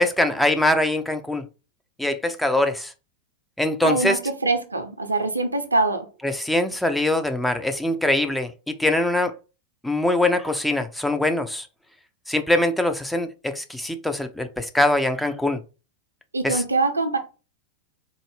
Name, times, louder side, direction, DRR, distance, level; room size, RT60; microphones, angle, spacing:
voice 1, 0.0-1.5 2.0-2.9 3.6-4.2 6.2-9.3 9.8-11.7 12.3-15.6 16.4-16.6, left 1 dB, 5° left, 0.4 m, -23 dB
voice 2, 3.8-6.1 16.3-17.2, right 3 dB, 80° right, 0.5 m, -23 dB
3.8 x 2.0 x 3.2 m
figure-of-eight pair, 90°, 0 cm